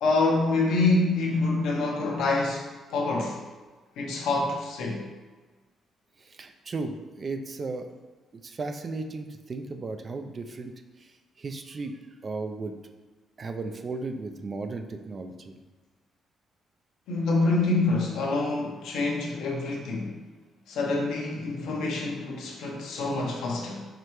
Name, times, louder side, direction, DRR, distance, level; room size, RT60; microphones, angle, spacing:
voice 1, 0.0-3.4 4.0-5.0 17.1-20.1 20.7-23.9, left 3 dB, 80° left, -1 dB, 0.8 m, -26 dB
voice 2, 6.2-7.9 8.3-10.7 11.0-12.8 13.4-15.6, right 3 dB, 40° right, 6 dB, 0.4 m, -35 dB
4.7 x 3.3 x 3.1 m, 1.3 s
cardioid pair, 90°, 0 cm